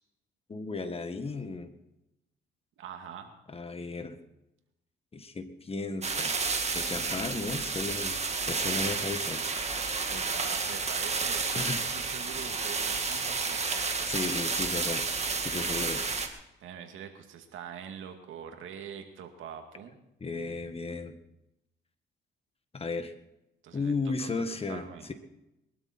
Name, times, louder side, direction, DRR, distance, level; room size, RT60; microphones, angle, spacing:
voice 1, 0.5-1.7 3.5-4.2 5.1-6.3 6.7-8.2 8.5-9.4 11.5-11.9 14.1-15.1 15.4-16.0 20.2-21.2 22.7-23.1 23.7-24.8, left 3 dB, 30° left, 8 dB, 1.8 m, -34 dB
voice 2, 2.8-3.3 10.1-11.6 11.9-13.6 16.6-20.0 23.6-25.1, right 8 dB, 80° right, 5 dB, 2.4 m, -44 dB
sound 1, 6.0-16.3, right 4 dB, 35° right, 2.1 m, -31 dB
22.5 x 12.5 x 4.5 m, 0.89 s
cardioid pair, 90°, 20 cm